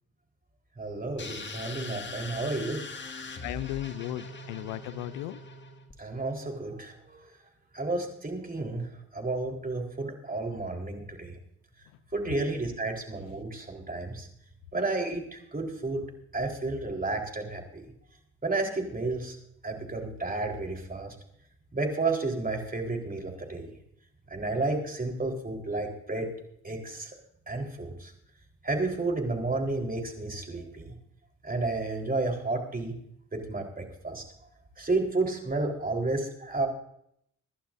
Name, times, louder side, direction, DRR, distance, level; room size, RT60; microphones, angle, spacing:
voice 1, 0.8-2.8 6.0-7.2 7.7-11.4 12.1-14.3 14.7-16.0 16.3-17.8 18.4-19.4 19.6-21.1 21.7-23.7 24.3-26.3 26.6-27.1 27.5-28.1 28.6-30.9 31.4-32.9 33.3-34.2 34.8-36.7, right 2 dB, 25° right, 2 dB, 4.1 m, -31 dB
sound 1, 1.2-5.9, left 3 dB, 30° left, 2.0 m, -41 dB
voice 2, 3.4-5.4, left 15 dB, 80° left, 17 dB, 0.6 m, -35 dB
26.0 x 11.5 x 2.6 m, 0.71 s
hypercardioid pair, 55°, 35 cm